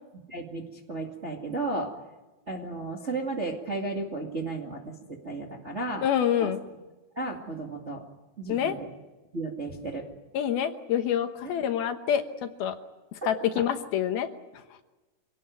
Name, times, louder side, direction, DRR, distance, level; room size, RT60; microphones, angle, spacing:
voice 1, 0.3-1.9 2.5-6.1 6.4-6.5 7.1-8.0 8.4-8.9 9.3-10.1 13.5-13.6, right 2 dB, 25° right, 0 dB, 1.5 m, -34 dB
voice 2, 6.0-6.6 8.5-8.8 10.3-12.8 13.2-14.3, left 9 dB, 70° left, 7 dB, 2.9 m, -27 dB
26.0 x 18.0 x 9.3 m, 1.1 s
omnidirectional pair, 4.8 m